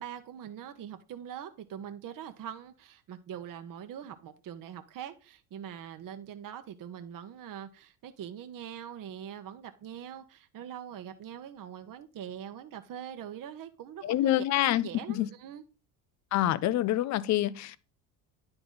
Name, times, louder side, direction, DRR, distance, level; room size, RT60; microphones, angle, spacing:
voice 1, 0.0-14.4 14.7-15.6, right 9 dB, 40° right, 1.0 m, -43 dB
voice 2, 14.0-15.3 16.3-17.8, left 14 dB, 35° left, 0.5 m, -27 dB
10.0 x 3.9 x 3.8 m
hypercardioid pair, 75°, 49 cm